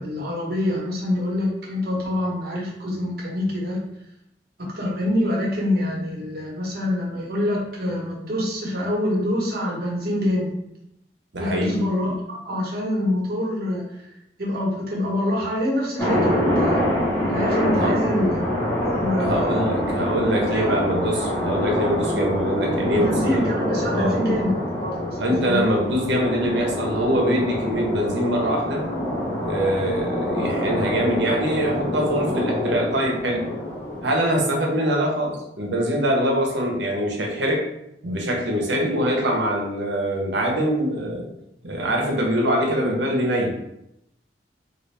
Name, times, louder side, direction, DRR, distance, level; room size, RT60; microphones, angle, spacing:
voice 1, 0.0-3.8 4.6-10.6 11.4-13.8 14.4-16.8 17.3-18.5 18.8-19.6 20.5-20.7 22.9-25.0 25.4-25.6, left 1 dB, 60° right, -3 dB, 1.1 m, -25 dB
voice 2, 11.3-11.8 17.7-18.0 19.2-23.5 23.9-24.2 25.2-28.8 29.5-33.5 34.0-37.6 38.0-41.3 41.6-43.5, equal, 80° right, 0 dB, 0.9 m, -23 dB
sound 1, 16.0-34.1, left 1 dB, 15° left, 1.0 m, -25 dB
3.9 x 2.5 x 3.3 m, 0.82 s
head